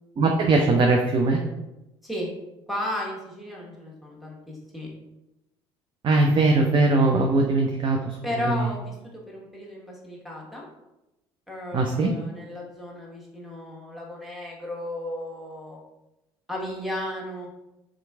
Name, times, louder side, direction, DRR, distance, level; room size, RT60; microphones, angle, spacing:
voice 1, 0.2-1.4 6.0-8.0 8.5-8.6 11.7-12.1, right 3 dB, 40° right, 2 dB, 0.5 m, -20 dB
voice 2, 2.7-4.9 8.2-10.6 11.5-15.8 16.5-17.5, left 1 dB, ahead, -4 dB, 1.1 m, -34 dB
3.6 x 2.9 x 2.3 m, 0.96 s
hypercardioid pair, 60°, 13 cm